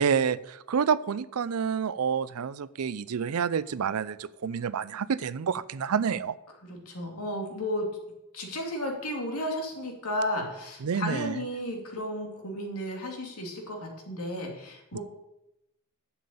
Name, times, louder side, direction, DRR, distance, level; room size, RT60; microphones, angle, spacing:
voice 1, 0.0-6.4 10.8-11.4 14.9-15.0, right 6 dB, 75° right, 18 dB, 0.5 m, -28 dB
voice 2, 6.6-7.9 8.3-15.0, left 1 dB, 90° left, 2 dB, 2.5 m, -33 dB
7.7 x 7.2 x 8.5 m, 0.89 s
head